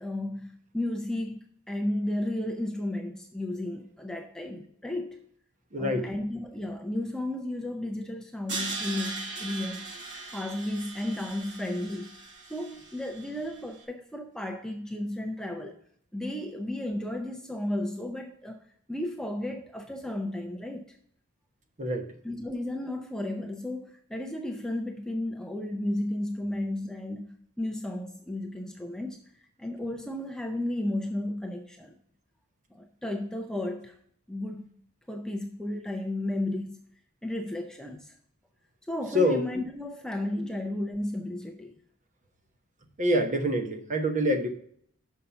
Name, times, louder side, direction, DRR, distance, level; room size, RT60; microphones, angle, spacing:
voice 1, 0.0-5.2 5.8-9.8 10.3-12.2 12.5-15.8 16.1-18.6 18.9-21.0 22.2-32.0 32.7-34.0 34.3-34.7 35.1-36.8 37.2-38.2 38.9-41.8, left 1 dB, 5° left, 3 dB, 0.5 m, -33 dB
voice 2, 5.7-6.1 21.8-22.1 39.1-39.5 40.4-40.5 43.0-44.5, equal, 35° right, 6 dB, 1.0 m, -26 dB
Crash cymbal, 8.5-13.5, right 3 dB, 50° right, 1.3 m, -39 dB
6.5 x 5.5 x 5.6 m, 0.65 s
head